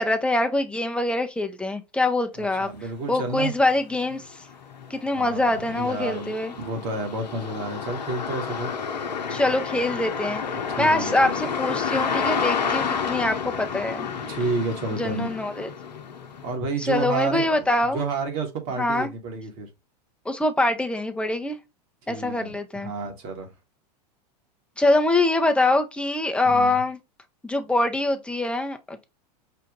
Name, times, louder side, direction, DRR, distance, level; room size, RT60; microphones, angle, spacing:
voice 1, 0.0-2.7 3.1-4.2 4.9-6.5 9.3-10.4 10.8-14.1 15.0-15.7 16.8-18.0 18.8-19.1 20.2-21.6 22.1-22.9 24.8-27.0 27.4-29.0, left 2 dB, 5° left, 0.8 m, -24 dB
voice 2, 2.4-3.5 5.1-8.7 10.7-11.4 14.3-15.3 16.4-19.7 22.1-23.5 26.4-26.8, right 3 dB, 50° right, 1.7 m, -30 dB
sound 1, 3.1-3.2 3.7-16.6, left 6 dB, 85° left, 0.8 m, -30 dB
5.9 x 2.5 x 2.9 m
hypercardioid pair, 95°, 21 cm